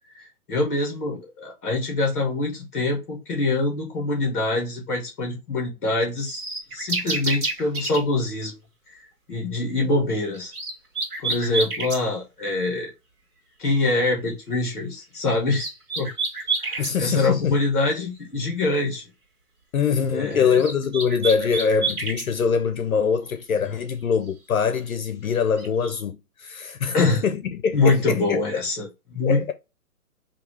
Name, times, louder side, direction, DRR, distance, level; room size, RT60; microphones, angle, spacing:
voice 1, 0.1-6.4 6.7-8.5 8.9-9.0 9.3-10.5 11.2-12.9 13.6-15.7 16.0-16.1 16.6-19.0 20.1-20.6 23.6-23.7 26.9-27.2 27.7-29.5, left 2 dB, 10° left, 1.0 m, -24 dB
sound 1, 6.2-8.0 10.3-12.0 15.3-17.0 20.3-22.3 25.4-25.9, right 3 dB, 65° right, 1.6 m, -28 dB
voice 2, 16.8-17.6 19.7-28.4 29.1-29.5, left 6 dB, 60° left, 0.6 m, -23 dB
3.2 x 2.8 x 4.3 m
hypercardioid pair, 175°, 47 cm